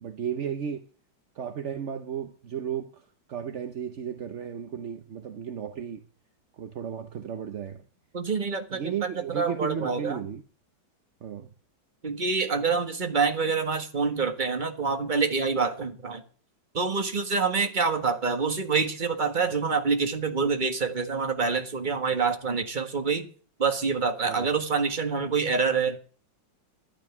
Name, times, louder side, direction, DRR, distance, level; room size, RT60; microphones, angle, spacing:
voice 1, 0.0-0.8 1.3-6.1 6.5-7.8 8.7-10.4 11.2-11.5 24.3-24.5, right 8 dB, 55° right, 0.9 m, -34 dB
voice 2, 8.1-9.1 9.3-10.2 12.0-16.2 16.7-23.3 23.6-26.0, right 5 dB, 25° right, 1.6 m, -26 dB
12.0 x 10.0 x 6.1 m
omnidirectional pair, 2.1 m